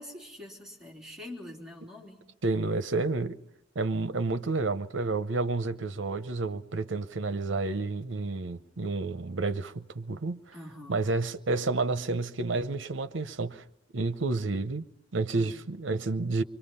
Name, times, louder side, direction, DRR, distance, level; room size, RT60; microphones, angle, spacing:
voice 1, 0.0-2.3 10.5-11.1 15.3-15.6, left 1 dB, 5° right, 3.4 m, -45 dB
voice 2, 2.4-3.4 3.7-10.4 10.9-13.6 13.9-14.9 15.1-16.4, right 3 dB, 70° right, 0.8 m, -30 dB
28.5 x 23.5 x 5.6 m
head